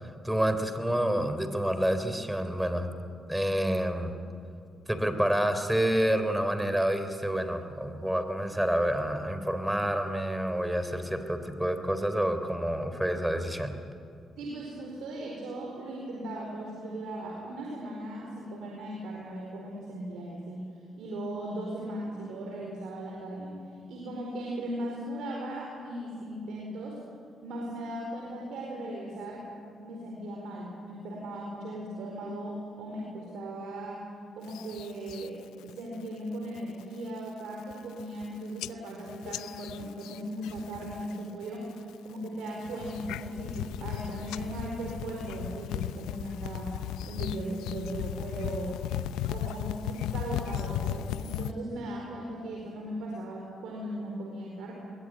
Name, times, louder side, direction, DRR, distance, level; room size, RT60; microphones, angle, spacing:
voice 1, 0.2-2.9 3.3-4.1 4.9-13.8, right 1 dB, 5° right, 9 dB, 3.4 m, -28 dB
voice 2, 14.4-20.7 21.0-23.6 23.9-27.0 27.4-29.4 29.8-34.1 34.3-35.4 35.6-46.7 47.0-48.8 49.2-54.8, right 1 dB, 80° right, -2 dB, 4.5 m, -38 dB
sound 1, 34.5-35.3 35.7-36.1 36.4-36.8 37.3-37.4 37.6-38.3 38.6-41.2 41.4-41.9 42.5-51.5, left 11 dB, 90° left, 0.6 m, -36 dB
22.0 x 22.0 x 10.0 m, 2.4 s
supercardioid pair, 65°, 0 cm